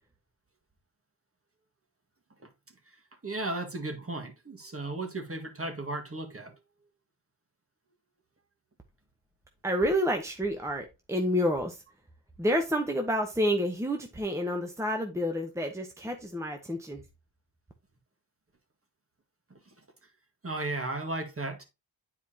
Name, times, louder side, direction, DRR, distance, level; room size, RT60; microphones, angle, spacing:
voice 1, 3.2-6.5 20.4-21.6, right 2 dB, 30° right, 1.8 m, -35 dB
voice 2, 9.6-11.8 12.4-17.0, equal, 5° right, 1.0 m, -29 dB
9.3 x 4.8 x 2.8 m
cardioid pair, 65°, 43 cm